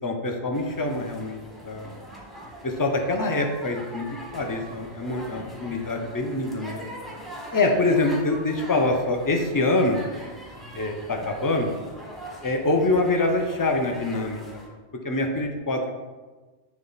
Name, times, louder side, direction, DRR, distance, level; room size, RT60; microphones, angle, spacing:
voice 1, 0.0-1.4 1.6-1.9 2.6-6.8 7.5-10.0 10.7-11.7 12.4-14.6 15.0-15.9, left 2 dB, 25° left, 3 dB, 0.4 m, -25 dB
sound 1, 0.5-14.7, right 1 dB, ahead, 0.9 m, -42 dB
7.3 x 3.4 x 4.0 m, 1.3 s
omnidirectional pair, 1.1 m